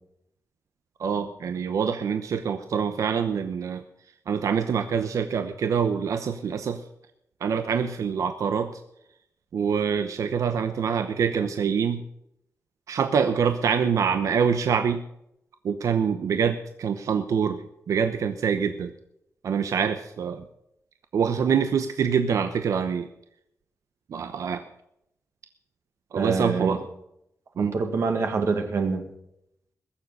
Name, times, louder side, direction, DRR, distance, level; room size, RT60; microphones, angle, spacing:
voice 1, 1.0-3.8 4.3-6.8 7.4-8.8 9.5-12.0 12.9-15.0 15.6-18.9 19.4-20.4 21.1-23.1 24.1-24.6 26.1-26.8 27.6-27.7, right 7 dB, 90° right, 8 dB, 0.9 m, -25 dB
voice 2, 26.2-26.8 27.6-29.1, right 4 dB, 55° right, 5 dB, 1.8 m, -26 dB
21.5 x 7.3 x 6.6 m, 0.78 s
wide cardioid pair, 175°, 5 cm